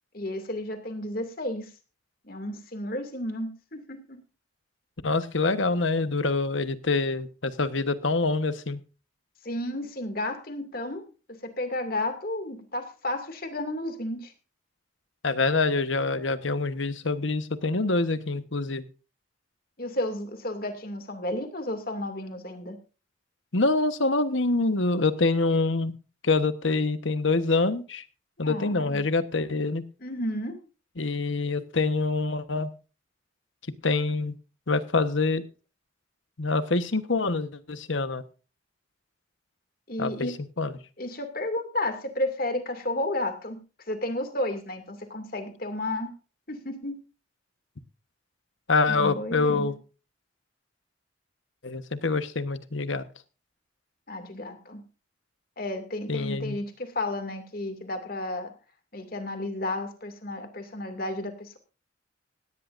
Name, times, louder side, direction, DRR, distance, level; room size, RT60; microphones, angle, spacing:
voice 1, 0.1-1.7 2.2-4.2 9.4-14.3 19.8-22.8 28.4-29.0 30.0-30.6 39.9-40.4 41.0-43.6 43.9-46.2 46.5-47.0 48.9-49.7 54.1-54.8 55.6-58.5 58.9-61.6, left 1 dB, 50° left, 7 dB, 2.5 m, -32 dB
voice 2, 5.0-8.8 15.2-18.8 23.5-25.9 26.2-28.0 28.4-29.8 31.0-32.7 33.8-34.3 34.7-35.4 36.4-38.2 40.0-40.3 40.6-40.8 48.7-49.7 51.6-53.1 56.1-56.6, left 3 dB, 75° left, 11 dB, 1.2 m, -25 dB
17.5 x 17.0 x 2.6 m, 0.34 s
head